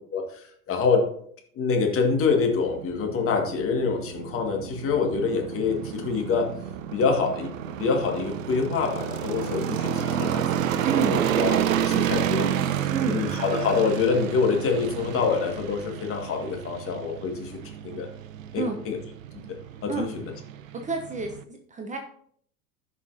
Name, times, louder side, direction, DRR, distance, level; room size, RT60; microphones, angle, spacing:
voice 1, 0.1-1.1 1.6-6.5 6.9-7.5 7.8-11.0 11.4-11.6 11.9-18.1 18.5-19.0 19.8-20.3, left 5 dB, 30° left, 2 dB, 1.9 m, -26 dB
sound 1, 2.1-21.4, right 10 dB, 55° right, 0.8 m, -30 dB
voice 2, 10.8-11.2 12.9-13.2 18.6-18.8 19.9-20.1 20.7-22.0, right 5 dB, 15° right, 4 dB, 0.9 m, -29 dB
16.0 x 5.7 x 2.8 m, 0.62 s
figure-of-eight pair, 90°, 47 cm